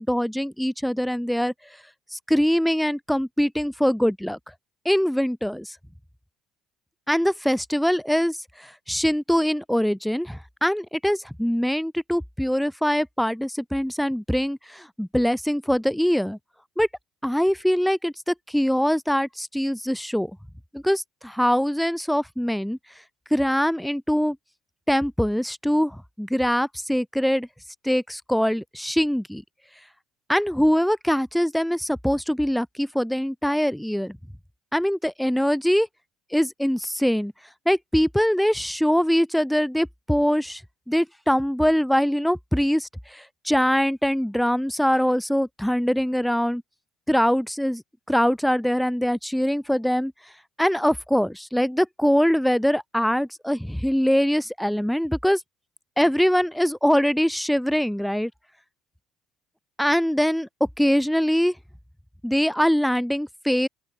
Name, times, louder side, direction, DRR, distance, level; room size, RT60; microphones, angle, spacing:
voice 1, 0.0-1.5 2.1-4.4 4.9-5.8 7.1-16.4 16.8-16.9 17.2-20.3 20.7-22.8 23.3-24.4 24.9-27.5 27.8-29.4 30.3-34.2 34.7-35.9 36.3-37.3 37.7-40.6 40.9-46.6 47.1-47.8 48.1-50.1 50.6-55.4 56.0-58.3 59.8-61.6 62.2-63.7, equal, ahead, 2.1 m, -23 dB
open air
hypercardioid pair, 65°, 0 cm